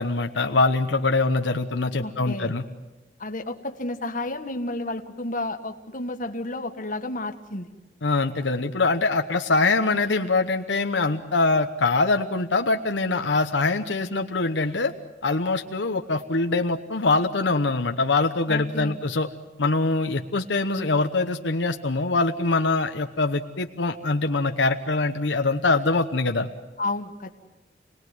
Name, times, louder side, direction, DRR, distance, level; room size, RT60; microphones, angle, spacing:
voice 1, 0.0-2.6 8.0-14.9 15.2-19.3 19.6-26.5, left 3 dB, 75° left, 5 dB, 1.0 m, -23 dB
voice 2, 2.0-2.5 3.2-7.7 18.5-19.0 26.8-27.3, left 2 dB, 45° left, 5 dB, 1.7 m, -31 dB
28.0 x 19.5 x 9.5 m, 1.1 s
head